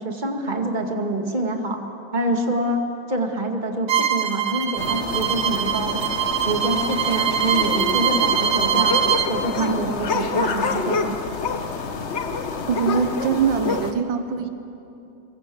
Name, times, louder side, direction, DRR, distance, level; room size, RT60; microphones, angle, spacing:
voice 1, 0.0-1.8 2.1-2.8 3.1-6.0 6.4-9.0 9.3-11.2, right 1 dB, 25° right, 4 dB, 2.2 m, -26 dB
Bowed string instrument, 3.9-9.3, right 8 dB, 55° right, 1.3 m, -23 dB
sound 1, 4.8-13.9, left 4 dB, 40° left, 1.3 m, -27 dB
voice 2, 12.7-14.5, right 6 dB, 90° right, 9 dB, 1.8 m, -23 dB
26.5 x 23.0 x 7.8 m, 2.8 s
omnidirectional pair, 2.0 m